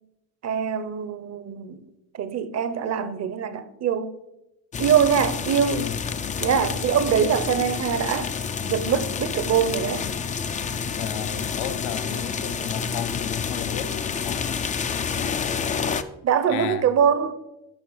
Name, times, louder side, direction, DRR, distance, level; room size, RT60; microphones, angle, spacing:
voice 1, 0.4-1.8 2.1-4.1 4.8-5.9 6.4-8.3 8.6-10.1 16.2-17.3, right 7 dB, 40° right, 0.7 m, -23 dB
sound 1, 4.7-16.0, left 6 dB, 20° left, 0.3 m, -29 dB
voice 2, 10.8-14.6 15.2-15.3 16.5-16.9, left 9 dB, 65° left, 0.6 m, -33 dB
10.5 x 5.4 x 3.1 m
hypercardioid pair, 60°, 42 cm